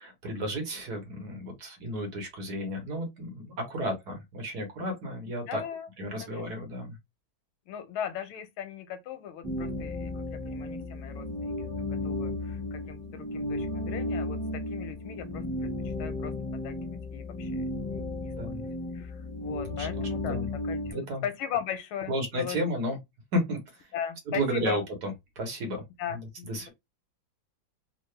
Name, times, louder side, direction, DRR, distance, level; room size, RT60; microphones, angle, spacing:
voice 1, 0.0-5.6 6.0-7.0 18.4-18.6 19.6-20.4 20.9-21.2 22.1-23.0 23.3-23.9 24.3-25.1 25.4-25.8 26.1-26.2 26.5-26.7, equal, 55° right, 1.5 m, -33 dB
voice 2, 5.5-5.9 6.2-6.4 7.7-15.4 15.8-18.5 18.9-20.4 20.6-22.6 23.9-24.8 26.0-26.7, left 9 dB, 90° left, 1.6 m, -38 dB
sound 1, 9.4-20.9, left 2 dB, 5° left, 1.2 m, -34 dB
3.8 x 2.4 x 3.2 m
omnidirectional pair, 2.2 m